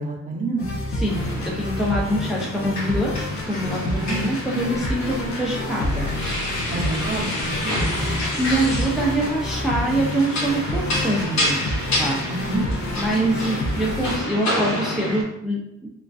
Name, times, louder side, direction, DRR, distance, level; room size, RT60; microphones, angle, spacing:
voice 1, 0.0-0.7 3.8-4.2 6.7-7.9 12.3-12.6, right 3 dB, 25° right, -2 dB, 0.7 m, -28 dB
sound 1, 0.6-14.2, left 1 dB, 50° left, 0.5 m, -29 dB
voice 2, 0.9-3.2 3.4-6.1 8.4-11.6 12.0-12.2 13.0-15.6, right 1 dB, ahead, -3 dB, 0.4 m, -24 dB
sound 2, 1.0-15.2, left 1 dB, 65° left, 0.9 m, -28 dB
2.4 x 2.3 x 2.3 m, 0.80 s
cardioid pair, 90°, 30 cm